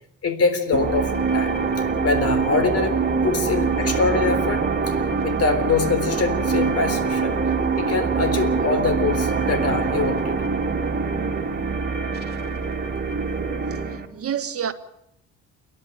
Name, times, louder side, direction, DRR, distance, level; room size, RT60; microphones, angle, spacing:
voice 1, 0.2-1.6 2.0-3.0 3.2-5.0 5.2-7.4 7.7-10.4, left 4 dB, 50° left, 3.8 m, -24 dB
sound 1, 0.7-14.1, right 5 dB, 35° right, 2.7 m, -24 dB
voice 2, 14.1-14.7, right 8 dB, 50° right, 1.6 m, -29 dB
29.5 x 11.0 x 8.8 m
cardioid pair, 90°, 30 cm